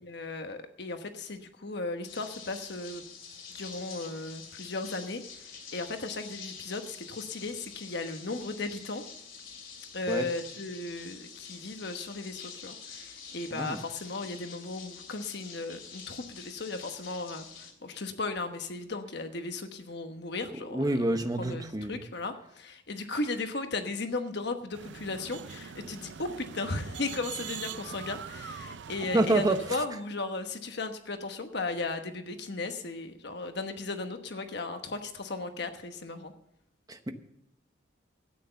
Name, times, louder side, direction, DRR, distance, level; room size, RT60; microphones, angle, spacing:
voice 1, 0.0-3.0 3.5-5.2 5.7-9.0 9.9-17.4 17.8-36.3, left 3 dB, 60° left, 7 dB, 1.1 m, -36 dB
sound 1, 2.1-17.7, left 6 dB, 85° left, 2.9 m, -47 dB
voice 2, 13.5-13.8 20.5-22.0 29.1-29.8 36.9-37.1, right 1 dB, 20° right, 7 dB, 0.9 m, -28 dB
sound 2, 24.7-29.9, right 6 dB, 60° right, 0.5 m, -42 dB
13.0 x 9.3 x 6.7 m, 0.78 s
head